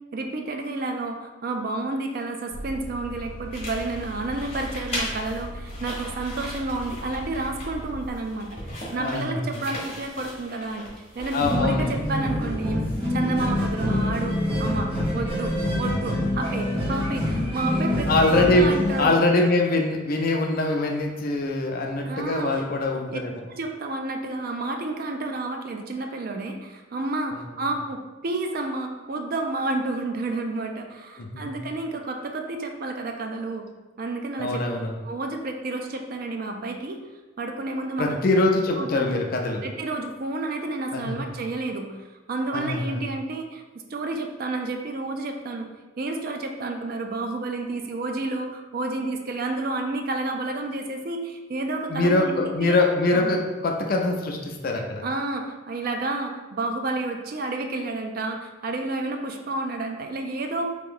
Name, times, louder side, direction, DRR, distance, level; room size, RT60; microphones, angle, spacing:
voice 1, 0.1-12.8 13.1-19.1 22.0-22.5 22.9-23.2 23.5-33.7 34.0-34.6 35.0-37.0 37.4-38.2 38.8-39.1 39.6-43.6 43.9-45.7 46.0-52.8 53.1-53.4 55.0-60.7, right 2 dB, 45° right, 4 dB, 0.4 m, -30 dB
sound 1, 2.5-8.1, equal, 75° left, 0.9 m, -38 dB
sound 2, 3.5-11.9, left 1 dB, 30° left, 1.2 m, -38 dB
voice 2, 8.9-9.6 11.3-12.0 18.1-23.3 31.2-31.6 34.4-35.0 38.0-39.6 40.9-41.2 42.5-43.0 51.9-55.0, left 2 dB, 45° left, 2 dB, 0.5 m, -23 dB
sound 3, 11.4-19.0, left 1 dB, 25° right, 0.9 m, -26 dB
3.4 x 3.0 x 3.8 m, 1.2 s
head